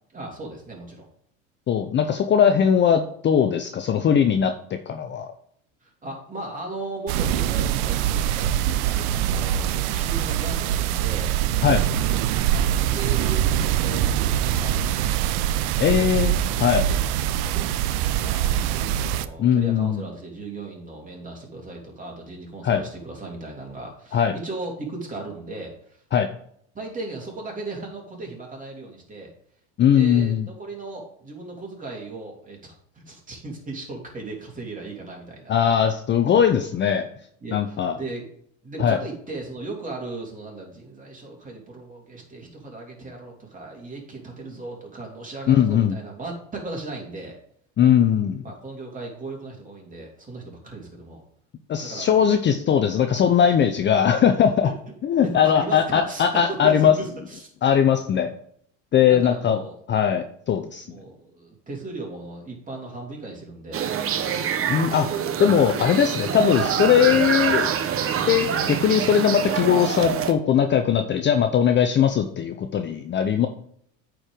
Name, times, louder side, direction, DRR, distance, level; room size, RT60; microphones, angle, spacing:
voice 1, 0.1-1.0 5.8-11.3 12.5-15.2 15.6-26.0 26.7-29.3 29.9-35.8 37.4-38.2 38.6-47.4 48.4-51.2 51.8-52.2 54.6-54.7 55.4-57.5 59.0-59.7 60.9-63.8, right 2 dB, 20° right, 0 dB, 3.2 m, -37 dB
voice 2, 1.7-4.5 4.9-5.3 11.6-11.8 15.8-16.3 16.6-16.8 19.4-20.0 22.6-22.8 24.1-24.3 26.1-26.3 29.8-30.5 35.5-37.1 37.5-38.0 38.8-39.0 45.5-45.9 47.8-48.4 51.7-54.7 55.0-56.9 57.6-58.3 58.9-59.6 59.9-60.9 64.7-67.7 68.2-73.5, left 8 dB, 30° left, 7 dB, 0.7 m, -20 dB
sound 1, 7.1-19.3, right 11 dB, 65° right, 0.7 m, -23 dB
sound 2, 63.7-70.3, right 8 dB, 35° right, 1.0 m, -25 dB
8.6 x 4.7 x 5.0 m, 0.66 s
supercardioid pair, 95°, 38 cm